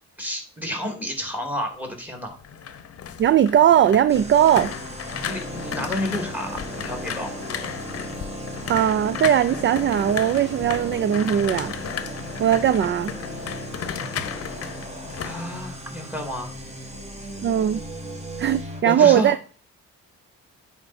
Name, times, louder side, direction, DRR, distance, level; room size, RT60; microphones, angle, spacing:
voice 1, 0.2-2.4 5.2-7.3 15.2-16.5 18.8-19.3, equal, 5° right, 2.4 m, -30 dB
sound 1, 2.3-16.3 16.6-17.0, left 8 dB, 50° left, 0.8 m, -34 dB
voice 2, 3.2-4.8 8.7-11.8 12.4-13.2 17.4-17.8 18.4-19.4, right 10 dB, 40° right, 0.4 m, -19 dB
sound 2, 4.1-18.8, equal, 20° right, 1.8 m, -36 dB
9.2 x 4.4 x 4.2 m
cardioid pair, 90°, 30 cm